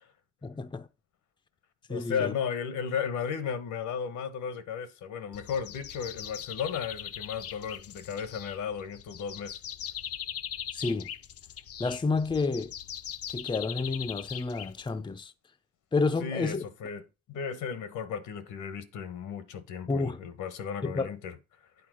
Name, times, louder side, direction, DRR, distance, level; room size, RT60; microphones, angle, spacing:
voice 1, 0.4-0.9 1.9-2.3 10.7-11.1 11.8-12.7 13.3-15.3 15.9-16.6 19.9-20.2 20.8-21.1, left 4 dB, 15° left, 0.6 m, -30 dB
voice 2, 1.9-9.5 16.2-17.0 17.3-21.3, left 7 dB, 80° left, 1.2 m, -34 dB
sound 1, 5.3-15.2, left 9 dB, 50° left, 0.6 m, -41 dB
8.7 x 4.3 x 6.3 m
cardioid pair, 90°, 30 cm